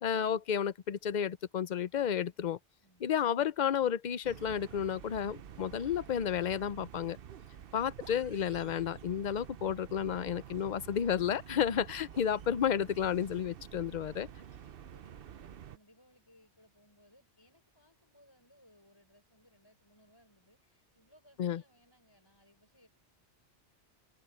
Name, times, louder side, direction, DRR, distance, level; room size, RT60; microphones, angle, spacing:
voice 1, 0.0-2.6 3.0-7.2 7.7-14.3 21.4-21.6, left 8 dB, 50° left, 0.6 m, -32 dB
voice 2, 2.8-3.2 7.2-7.6 13.6-22.9, equal, 20° left, 6.3 m, -66 dB
sound 1, 4.2-15.8, right 9 dB, 60° right, 0.8 m, -49 dB
omnidirectional pair, 1.2 m